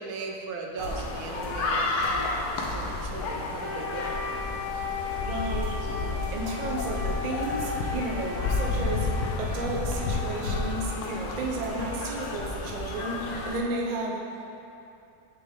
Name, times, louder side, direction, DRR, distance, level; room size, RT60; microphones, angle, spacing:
voice 1, 0.0-2.3 2.5-4.1, right 4 dB, 75° right, 2 dB, 1.1 m, -38 dB
sound 1, 0.8-13.6, left 3 dB, 80° left, 1.2 m, -31 dB
sound 2, 0.8-1.0 1.4-1.6 2.0-2.2 2.6-3.1 5.6-5.8 6.2-6.4 6.8-7.0 7.3-7.8 10.4-10.8 11.0-11.1 11.3-12.0 12.2-12.9, left 1 dB, 45° left, 0.8 m, -40 dB
Wind instrument woodwind instrument, 3.6-11.6, left 5 dB, 10° right, 0.7 m, -37 dB
voice 2, 5.2-5.8 6.3-9.1 9.4-14.2, right 2 dB, 60° right, -1 dB, 0.4 m, -32 dB
6.8 x 4.6 x 3.6 m, 2.8 s
omnidirectional pair, 1.7 m